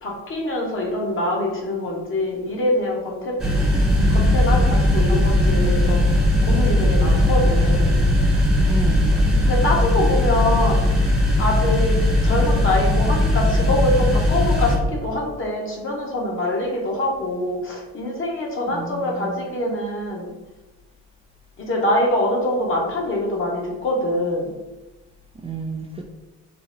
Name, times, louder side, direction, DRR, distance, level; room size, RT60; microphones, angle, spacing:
voice 1, 0.0-3.7 4.1-6.0 6.4-8.0 9.5-10.8 11.4-11.9 12.2-20.3 21.6-24.5, left 1 dB, 45° left, -2 dB, 1.1 m, -24 dB
sound 1, 3.4-14.8, left 1 dB, ahead, 0.9 m, -19 dB
sound 2, 3.9-9.5, right 1 dB, 60° right, 1.0 m, -25 dB
voice 2, 8.7-9.1 18.7-19.5 25.4-26.0, right 3 dB, 20° right, 0 dB, 0.4 m, -31 dB
3.9 x 2.1 x 3.8 m, 1.1 s
cardioid pair, 90°, 30 cm